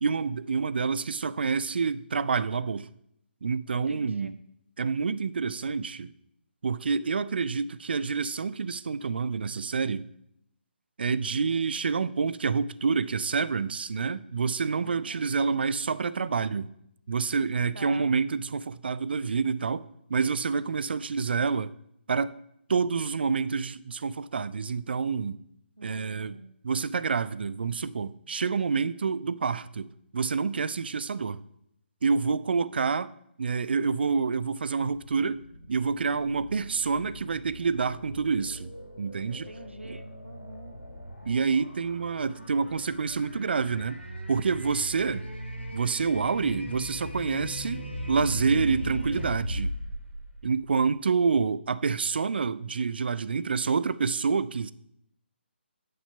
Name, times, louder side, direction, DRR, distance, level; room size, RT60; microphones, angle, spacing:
voice 1, 0.0-2.9 3.4-4.3 4.8-6.1 6.6-10.1 11.0-16.7 17.1-21.7 22.1-22.4 22.7-25.4 25.8-26.4 26.6-31.4 32.0-33.1 33.4-38.7 39.0-39.5 39.8-40.0 41.2-44.0 44.3-45.3 45.7-49.7 50.4-54.7, right 5 dB, 60° right, 0.4 m, -28 dB
voice 2, 3.7-4.3 14.8-15.2 17.7-18.1 25.8-26.6 39.3-40.7, right 1 dB, 85° right, 0.9 m, -45 dB
sound 1, 34.9-51.0, equal, 90° left, 2.7 m, -38 dB
9.8 x 5.5 x 5.8 m
figure-of-eight pair, 140°, 6 cm